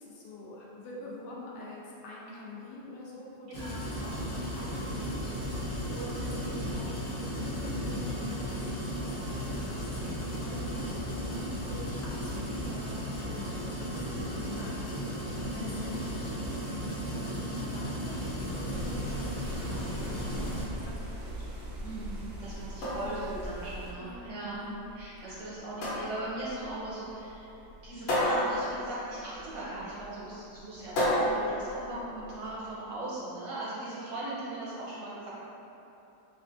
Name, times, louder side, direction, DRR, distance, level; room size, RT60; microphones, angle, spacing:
voice 1, 0.0-21.5 24.0-24.9 25.2-25.5 31.7-32.1, left 2 dB, 70° left, -5 dB, 1.1 m, -45 dB
sound 1, 3.5-20.6, equal, 35° left, 0.7 m, -35 dB
sound 2, 18.7-23.9, equal, 90° right, 0.7 m, -40 dB
voice 2, 21.8-24.6 25.0-27.5 27.8-35.3, right 2 dB, 65° right, -8 dB, 1.1 m, -39 dB
sound 3, 22.6-32.5, equal, 85° left, 1.6 m, -33 dB
4.1 x 3.4 x 2.5 m, 3.0 s
omnidirectional pair, 2.0 m